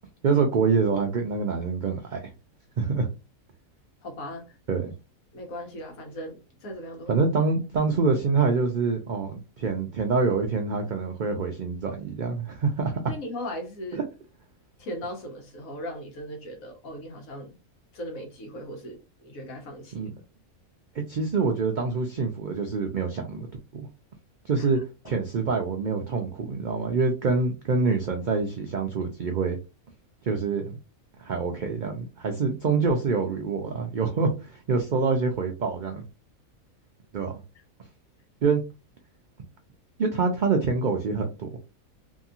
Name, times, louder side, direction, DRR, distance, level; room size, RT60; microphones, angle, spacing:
voice 1, 0.2-2.3 2.8-3.1 4.7-4.9 7.1-13.0 13.9-14.0 19.9-20.1 20.9-23.5 23.7-23.9 24.4-24.8 25.0-29.6 30.2-30.8 31.2-36.0 37.1-37.4 38.4-38.6 40.0-41.5, right 4 dB, 90° right, 0.4 m, -26 dB
voice 2, 4.0-4.6 5.3-7.1 13.1-14.0 14.8-17.6 17.9-20.1 24.6-24.7, equal, 85° left, 1.4 m, -38 dB
3.0 x 2.7 x 2.4 m
omnidirectional pair, 1.4 m